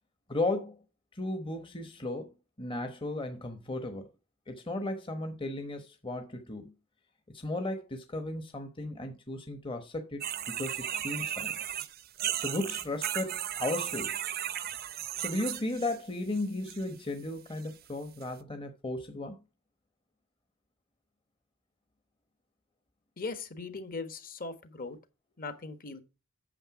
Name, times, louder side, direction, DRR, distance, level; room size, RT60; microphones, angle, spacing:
voice 1, 0.3-0.8 1.1-2.3 2.6-4.1 4.5-6.7 7.3-10.2 10.5-11.5 12.4-14.2 15.2-19.4, left 2 dB, 25° left, 1.0 m, -35 dB
sound 1, 10.2-16.0 16.3-16.8 17.6-17.7 18.2-18.3, right 10 dB, 45° right, 0.6 m, -35 dB
voice 2, 23.2-25.0 25.4-26.0, left 3 dB, 45° left, 1.3 m, -39 dB
8.9 x 6.6 x 4.8 m
head